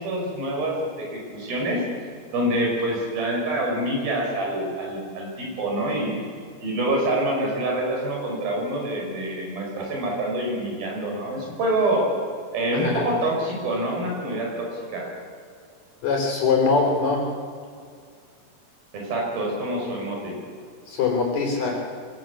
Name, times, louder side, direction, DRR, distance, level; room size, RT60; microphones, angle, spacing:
voice 1, 0.0-1.8 2.3-6.2 6.6-12.1 12.5-15.1 18.9-20.4, right 1 dB, 85° right, -1 dB, 7.3 m, -26 dB
voice 2, 12.7-13.0 16.0-17.3 20.9-21.8, left 4 dB, 55° left, 0 dB, 5.2 m, -22 dB
24.5 x 18.5 x 8.5 m, 2.2 s
omnidirectional pair, 4.1 m